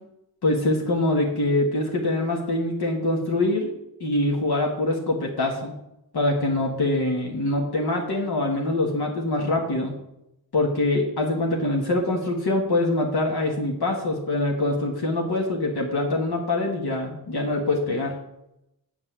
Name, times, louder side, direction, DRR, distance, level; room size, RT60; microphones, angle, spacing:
voice 1, 0.4-3.7 4.0-5.7 6.1-9.9 10.5-18.1, left 2 dB, 85° left, -1 dB, 1.8 m, -24 dB
8.3 x 5.5 x 6.8 m, 0.85 s
wide cardioid pair, 75°, 38 cm